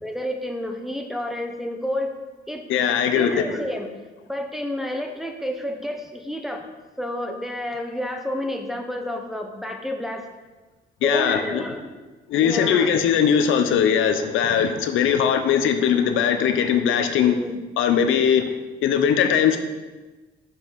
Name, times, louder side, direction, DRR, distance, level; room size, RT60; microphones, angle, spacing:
voice 1, 0.0-2.1 2.5-2.7 3.1-3.9 4.3-6.6 7.0-10.2 11.0-12.0 12.4-13.1 17.4-17.6, left 1 dB, ahead, 2 dB, 1.0 m, -30 dB
voice 2, 2.7-3.5 11.0-11.6 12.3-17.4 17.8-18.5 18.8-19.6, left 8 dB, 85° left, 8 dB, 0.7 m, -20 dB
6.2 x 5.8 x 5.1 m, 1.2 s
cardioid pair, 90°, 20 cm